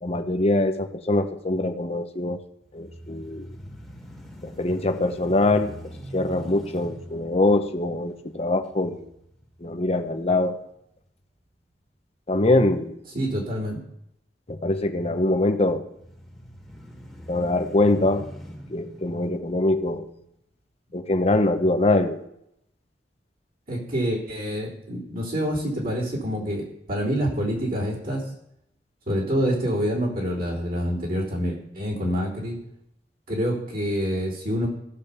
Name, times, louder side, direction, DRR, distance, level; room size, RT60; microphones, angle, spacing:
voice 1, 0.0-2.4 2.7-3.5 4.4-5.8 6.1-9.0 9.6-10.7 12.3-13.0 14.5-15.9 17.3-18.3 18.7-20.1 20.9-22.2, left 2 dB, 35° left, 7 dB, 0.9 m, -23 dB
sound 1, 2.6-10.8 11.2-11.3 15.9-20.4, equal, ahead, 1.9 m, -43 dB
voice 2, 13.1-13.8 23.7-28.2 29.1-32.6 33.3-34.7, equal, 55° right, -6 dB, 3.7 m, -27 dB
15.5 x 5.2 x 6.9 m, 0.77 s
head